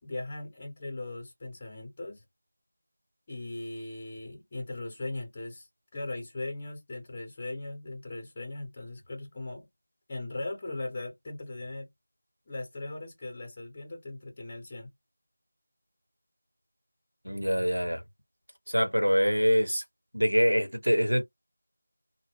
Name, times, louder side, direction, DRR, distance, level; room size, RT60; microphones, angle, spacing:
voice 1, 0.0-2.2 3.3-9.7 10.1-11.9 12.4-14.9, left 2 dB, 20° left, 0.9 m, -39 dB
voice 2, 17.2-18.0 18.7-19.8 20.1-21.2, equal, 85° right, 0.9 m, -24 dB
2.1 x 2.1 x 3.4 m
figure-of-eight pair, 170°, 0 cm